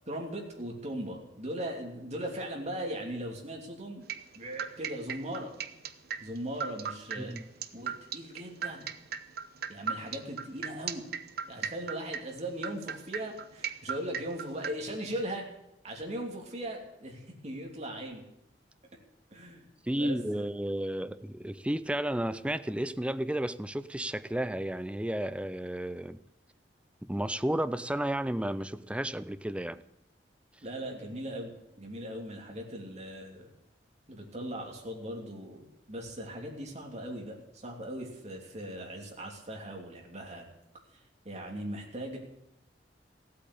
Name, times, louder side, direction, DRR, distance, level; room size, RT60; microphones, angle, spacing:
voice 1, 0.1-4.1 4.3-5.5 6.2-7.3 7.7-8.9 9.7-11.1 11.5-15.5 15.8-18.2 19.3-19.6 20.0-20.4 30.6-33.5 34.1-40.5 41.2-42.2, right 1 dB, 40° right, 1 dB, 3.1 m, -39 dB
sound 1, 4.1-14.7, right 7 dB, 60° right, 0.8 m, -36 dB
voice 2, 19.9-26.2 27.0-29.8, right 1 dB, 5° right, 13 dB, 0.5 m, -32 dB
15.0 x 8.6 x 8.6 m, 0.83 s
head